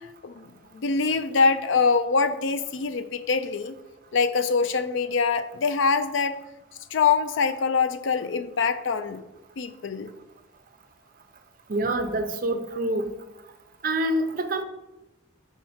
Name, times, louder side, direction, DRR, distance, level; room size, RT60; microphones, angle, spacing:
voice 1, 0.2-3.7 4.1-6.4 6.9-9.2 9.6-10.1, left 5 dB, 75° left, 12 dB, 0.4 m, -24 dB
voice 2, 11.7-13.1 13.8-14.6, right 1 dB, 45° right, 7 dB, 0.5 m, -26 dB
4.7 x 4.3 x 5.5 m, 0.99 s
head